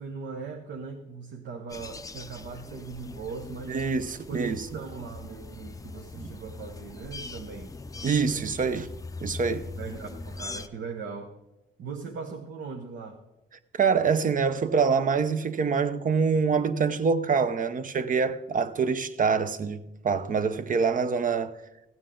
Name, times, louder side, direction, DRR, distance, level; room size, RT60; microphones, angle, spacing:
voice 1, 0.0-3.8 4.3-7.8 8.2-8.5 9.8-11.3 11.8-13.2, right 5 dB, 65° right, 1.1 m, -39 dB
sound 1, 1.7-10.7, left 3 dB, 15° left, 0.5 m, -41 dB
voice 2, 3.7-4.7 6.2-6.3 8.0-8.9 9.2-9.7 13.7-21.5, right 5 dB, 40° right, 0.7 m, -25 dB
15.5 x 9.0 x 3.8 m
cardioid pair, 90°, 20 cm